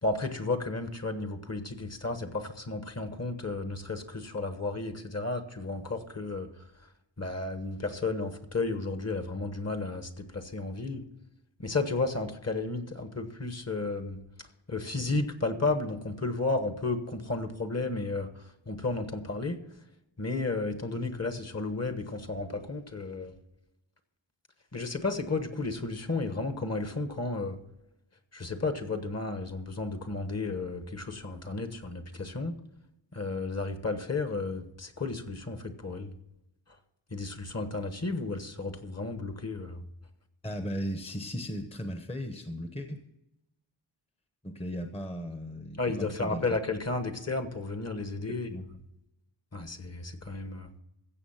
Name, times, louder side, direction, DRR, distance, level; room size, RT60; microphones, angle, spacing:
voice 1, 0.0-6.5 7.2-11.0 11.6-14.2 14.7-18.3 18.7-19.6 20.2-23.3 24.7-27.6 28.3-32.5 33.1-36.1 37.1-39.8 45.8-48.6 49.5-50.7, left 3 dB, 30° left, 8 dB, 1.3 m, -33 dB
voice 2, 40.4-43.0 44.4-46.5 48.3-48.7, equal, 10° left, 6 dB, 1.0 m, -37 dB
15.5 x 7.0 x 5.7 m, 0.87 s
wide cardioid pair, 120°, 49 cm